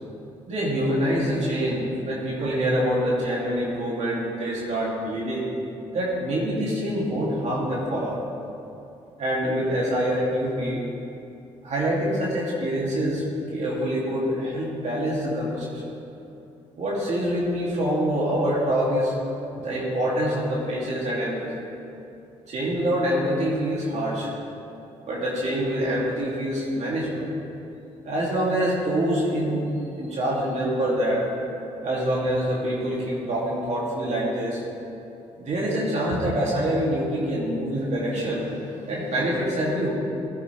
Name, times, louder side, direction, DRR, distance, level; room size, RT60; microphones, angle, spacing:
voice 1, 0.5-5.4 5.9-8.2 9.2-10.8 11.6-13.2 13.5-15.8 16.8-19.1 19.5-21.5 22.5-24.3 25.0-27.3 28.0-29.7 30.0-31.3 31.8-34.6 35.4-39.9, equal, 60° right, -5 dB, 3.0 m, -25 dB
17.5 x 10.0 x 3.5 m, 2.8 s
supercardioid pair, 60°, 13 cm